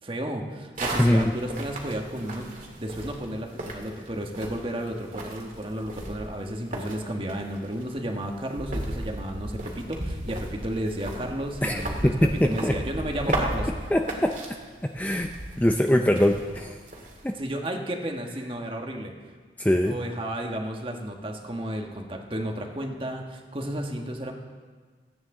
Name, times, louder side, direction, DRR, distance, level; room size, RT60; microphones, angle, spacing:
voice 1, 0.0-13.9 17.3-19.1 19.9-24.3, right 1 dB, 30° right, 2 dB, 1.3 m, -33 dB
sound 1, 0.8-17.3, right 1 dB, 45° right, 2.1 m, -36 dB
voice 2, 1.0-1.3 11.6-12.7 13.9-14.3 14.8-15.3 15.6-16.7 17.2-17.4 19.6-20.0, left 1 dB, 10° left, 4 dB, 0.5 m, -22 dB
27.5 x 9.4 x 3.8 m, 1.5 s
head